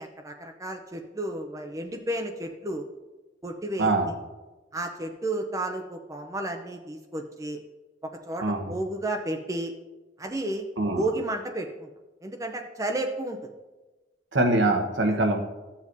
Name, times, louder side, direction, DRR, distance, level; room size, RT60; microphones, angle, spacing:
voice 1, 0.0-2.9 3.4-3.9 4.7-7.6 8.0-9.7 10.2-10.6 10.9-11.9 12.2-13.5, right 1 dB, 20° right, 4 dB, 0.6 m, -32 dB
voice 2, 3.8-4.1 8.4-8.8 10.8-11.1 14.3-15.4, right 2 dB, 80° right, 3 dB, 1.2 m, -23 dB
14.5 x 7.3 x 2.7 m, 1.2 s
head